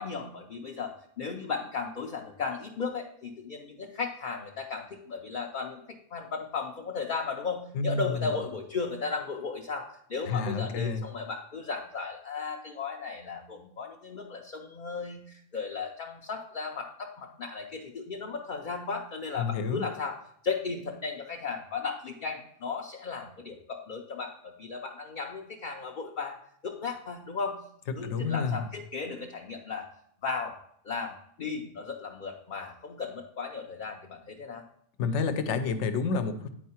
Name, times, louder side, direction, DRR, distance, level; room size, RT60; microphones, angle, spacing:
voice 1, 0.0-26.4 26.6-27.6 28.0-29.9 30.2-30.5 30.8-34.6, left 5 dB, 50° left, 1 dB, 0.7 m, -35 dB
voice 2, 7.7-8.1 10.3-11.0 19.4-19.8 28.0-28.6 35.0-36.5, left 4 dB, 75° left, 9 dB, 1.0 m, -29 dB
9.3 x 4.6 x 4.3 m, 0.69 s
omnidirectional pair, 1.2 m